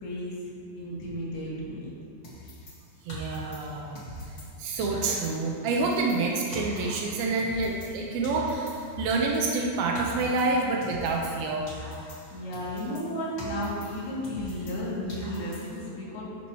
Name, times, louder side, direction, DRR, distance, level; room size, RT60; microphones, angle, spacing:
voice 1, 0.0-0.3 0.8-1.9 12.3-16.3, equal, 85° left, -7 dB, 4.4 m, -33 dB
sound 1, 2.2-4.5 4.8-8.0 8.2-11.4 11.7-14.8 15.1-15.9, equal, 60° left, 0.7 m, -42 dB
voice 2, 3.1-11.7, right 3 dB, 85° right, -1 dB, 2.7 m, -28 dB
12.5 x 10.0 x 3.0 m, 2.4 s
omnidirectional pair, 4.3 m